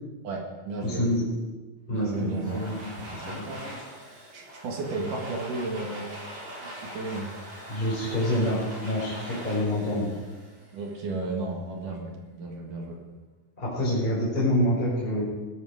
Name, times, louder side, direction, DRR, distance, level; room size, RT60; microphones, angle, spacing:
voice 1, 0.2-1.0 1.9-2.6 3.1-3.9 4.3-6.3 6.6-7.3 10.7-13.0, right 3 dB, 55° right, 1 dB, 2.8 m, -34 dB
voice 2, 0.8-1.3 1.9-2.8 3.1-3.4 7.7-10.1 13.6-15.3, left 1 dB, 10° left, -8 dB, 5.2 m, -27 dB
Domestic sounds home sounds, 2.1-11.0, right 1 dB, 25° right, 4.4 m, -42 dB
19.0 x 12.5 x 5.1 m, 1.2 s
omnidirectional pair, 5.5 m